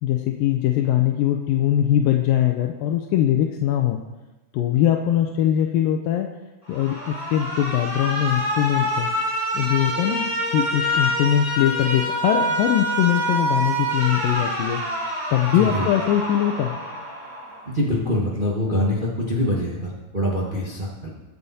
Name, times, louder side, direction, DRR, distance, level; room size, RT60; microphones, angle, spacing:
voice 1, 0.0-4.0 4.5-6.3 6.7-9.1 9.5-10.3 10.5-14.8 15.3-16.8, left 11 dB, 80° left, 3 dB, 2.4 m, -21 dB
Alarm, 6.7-17.7, equal, 10° right, 4.1 m, -26 dB
voice 2, 15.5-15.9 17.7-21.1, left 1 dB, 65° right, -4 dB, 0.5 m, -24 dB
21.5 x 7.2 x 4.2 m, 1.1 s
omnidirectional pair, 4.1 m